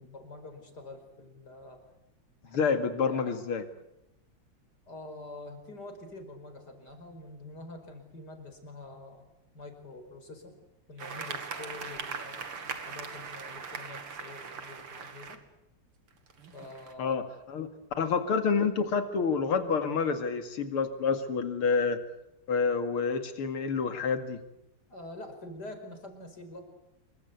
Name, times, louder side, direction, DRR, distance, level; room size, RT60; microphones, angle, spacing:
voice 1, 0.0-1.8 2.4-2.7 4.9-9.2 9.5-10.6 10.9-15.4 16.5-17.2 24.9-26.6, left 2 dB, 50° left, 6 dB, 5.6 m, -46 dB
voice 2, 2.5-3.6 17.0-17.7 18.0-22.0 22.5-24.4, left 5 dB, 85° left, 9 dB, 3.1 m, -28 dB
sound 1, 11.0-15.4 16.1-16.9, right 5 dB, 85° right, 3.2 m, -40 dB
27.5 x 23.5 x 8.3 m, 0.85 s
omnidirectional pair, 2.4 m